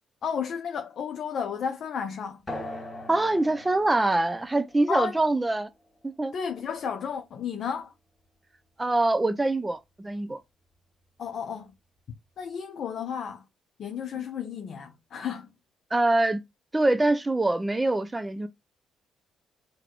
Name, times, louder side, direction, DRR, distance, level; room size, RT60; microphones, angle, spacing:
voice 1, 0.2-2.4 4.9-5.2 6.3-7.9 11.2-11.7 12.4-13.4 13.8-15.5, left 7 dB, 60° left, 0.6 m, -32 dB
sound 1, 2.5-7.5, left 1 dB, 25° left, 2.0 m, -43 dB
voice 2, 3.1-5.7 6.0-6.3 8.8-10.4 15.9-16.4 16.7-18.5, right 2 dB, 15° right, 0.6 m, -24 dB
4.0 x 2.3 x 4.5 m
cardioid pair, 90°, 0 cm